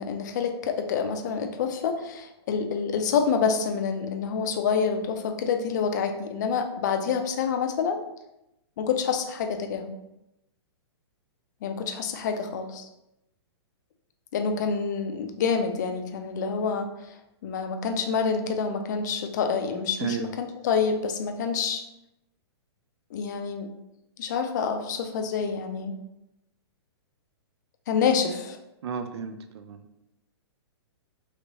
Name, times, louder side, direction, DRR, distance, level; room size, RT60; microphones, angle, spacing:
voice 1, 0.0-8.0 8.8-9.9 11.6-12.9 14.3-17.1 17.4-21.8 23.1-23.7 24.2-25.9 27.9-28.6, left 6 dB, 40° left, 6 dB, 0.4 m, -27 dB
voice 2, 20.0-20.3 28.8-30.1, right 7 dB, 70° right, 8 dB, 0.4 m, -33 dB
3.2 x 3.0 x 2.7 m, 0.88 s
hypercardioid pair, 165°, 14 cm